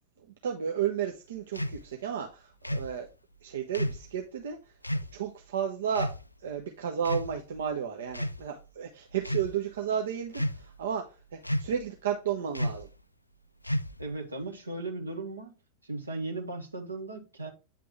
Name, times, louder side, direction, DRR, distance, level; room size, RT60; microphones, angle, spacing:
voice 1, 0.4-3.1 3.4-4.7 5.1-12.9, right 8 dB, 60° right, 0.7 m, -33 dB
sound 1, 1.5-1.8 2.6-2.9 3.7-4.1 4.8-5.1 5.9-6.2 7.0-7.6 8.1-8.4 9.1-9.5 10.3-10.8 11.4-11.8 12.5-12.9 13.6-14.1, equal, 85° left, 0.3 m, -31 dB
voice 2, 14.0-15.5 15.8-17.5, right 2 dB, 80° right, 1.3 m, -37 dB
8.7 x 3.5 x 3.1 m
figure-of-eight pair, 90°, 0 cm